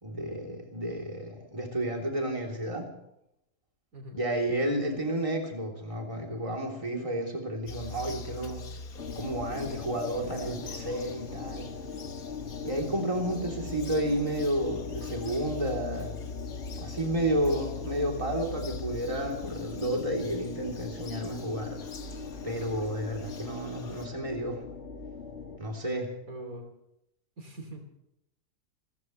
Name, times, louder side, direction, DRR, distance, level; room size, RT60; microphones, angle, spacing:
voice 1, 0.0-2.9 4.1-8.6 9.1-11.7 12.6-16.1 16.8-21.8 22.4-24.6 25.6-26.1, right 1 dB, 20° right, 1 dB, 3.3 m, -31 dB
Bird vocalization bird call bird song, 7.7-24.1, left 4 dB, 60° left, 1.9 m, -43 dB
sound 1, 9.0-25.6, left 4 dB, 45° left, 2.6 m, -40 dB
voice 2, 26.3-26.7 27.4-27.8, right 1 dB, 55° right, 3 dB, 3.3 m, -42 dB
28.0 x 15.0 x 3.2 m, 0.81 s
omnidirectional pair, 1.7 m